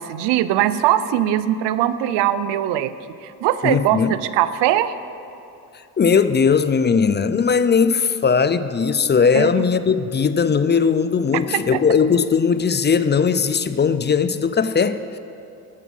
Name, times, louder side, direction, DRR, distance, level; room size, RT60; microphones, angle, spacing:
voice 1, 0.0-2.9 3.2-4.9 9.3-9.5 11.7-11.8, right 12 dB, 85° right, 14 dB, 0.5 m, -20 dB
voice 2, 3.6-4.1 6.0-15.2, left 6 dB, 25° left, 13 dB, 0.4 m, -18 dB
12.0 x 7.3 x 5.5 m, 2.7 s
supercardioid pair, 65°, 41 cm